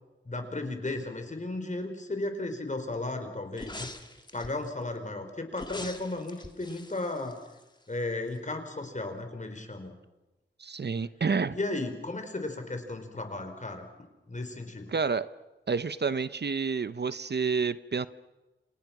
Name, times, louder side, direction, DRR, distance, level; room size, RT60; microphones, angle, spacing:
voice 1, 0.2-3.9 4.3-7.4 7.9-9.9 11.5-13.9 14.3-14.9, left 2 dB, 40° left, 6 dB, 4.7 m, -35 dB
sound 1, 3.5-4.7 5.5-8.0 8.3-8.4, left 2 dB, 20° left, 2.2 m, -44 dB
voice 2, 10.6-11.6 14.9-15.3 15.7-18.1, right 5 dB, 60° right, 14 dB, 0.8 m, -29 dB
29.0 x 28.0 x 6.1 m, 1.1 s
wide cardioid pair, 80°, 20 cm